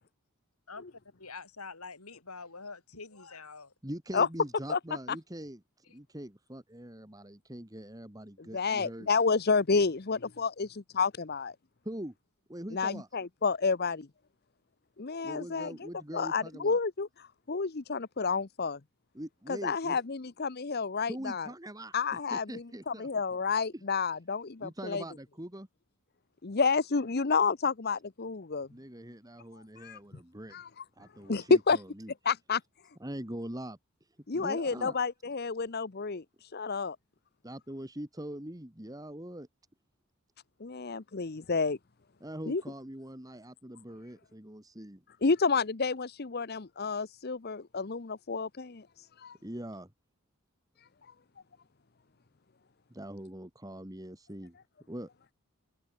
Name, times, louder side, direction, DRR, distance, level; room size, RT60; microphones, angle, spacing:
voice 1, 1.2-3.7, left 4 dB, 80° left, 4.2 m, -45 dB
voice 2, 3.8-9.1 11.8-12.1 12.5-13.1 15.2-16.8 19.1-20.0 21.1-23.1 23.7-23.8 24.6-25.7 28.7-30.6 31.0-32.1 33.0-34.1 34.3-35.0 37.4-39.5 42.2-45.0 49.4-49.9 52.9-54.6 54.9-55.1, right 1 dB, 15° right, 1.9 m, -43 dB
voice 3, 8.5-11.5 12.7-14.1 15.0-18.8 19.5-21.5 21.9-22.4 22.9-25.0 26.4-28.7 29.8-30.0 30.5-30.7 31.3-31.8 32.2-32.6 34.3-36.2 36.5-37.0 40.6-41.8 42.5-42.6 45.2-48.8 49.2-49.4, left 4 dB, 45° left, 0.8 m, -30 dB
head